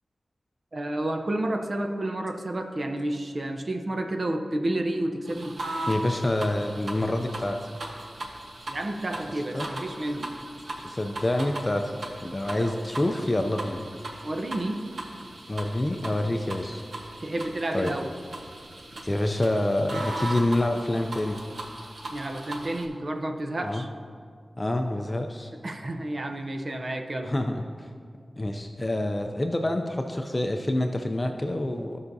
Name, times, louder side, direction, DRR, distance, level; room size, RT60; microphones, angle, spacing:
voice 1, 0.7-5.6 8.7-10.3 12.5-12.8 14.2-14.8 17.2-18.1 22.1-23.9 25.6-27.3, right 1 dB, 50° right, 5 dB, 0.7 m, -30 dB
sound 1, 5.2-22.8, right 1 dB, 85° right, 1.0 m, -38 dB
voice 2, 5.9-7.6 9.5-9.7 10.8-11.9 12.2-13.8 15.5-16.8 17.7-17.9 19.0-21.4 23.6-23.8 24.6-25.5 27.2-27.9 28.4-32.0, left 1 dB, 25° left, 4 dB, 0.5 m, -27 dB
15.5 x 5.7 x 2.7 m, 2.2 s
wide cardioid pair, 80°, 0 cm